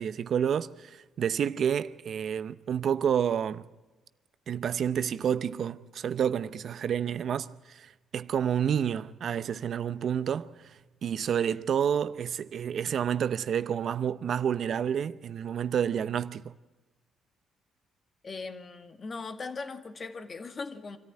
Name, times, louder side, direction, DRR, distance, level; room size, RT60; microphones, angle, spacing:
voice 1, 0.0-3.6 4.5-16.5, right 8 dB, 60° right, 0.7 m, -29 dB
voice 2, 18.2-21.0, left 4 dB, 40° left, 1.9 m, -39 dB
25.5 x 14.0 x 9.7 m
cardioid pair, 90°, 0 cm